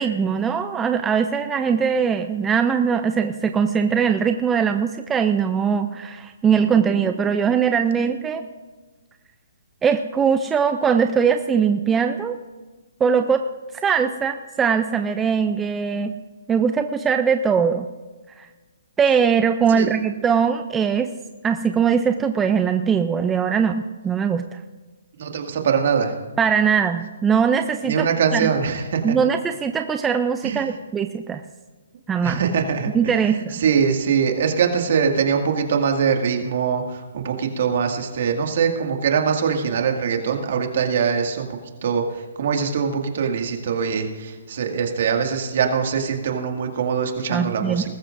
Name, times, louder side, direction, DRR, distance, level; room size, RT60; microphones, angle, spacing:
voice 1, 0.0-8.5 9.8-12.4 13.0-13.4 13.8-16.1 16.5-17.9 18.4-18.5 19.0-21.1 21.4-24.6 26.4-28.1 28.3-28.5 29.0-31.4 32.1-32.4 32.9-33.5 47.3-47.9, right 6 dB, 10° right, 7 dB, 0.4 m, -21 dB
voice 2, 25.2-26.1 27.8-29.0 30.4-30.6 32.2-32.9 33.3-47.9, right 6 dB, 55° right, 3 dB, 2.0 m, -22 dB
20.5 x 13.5 x 2.6 m, 1.3 s
hypercardioid pair, 165°, 0 cm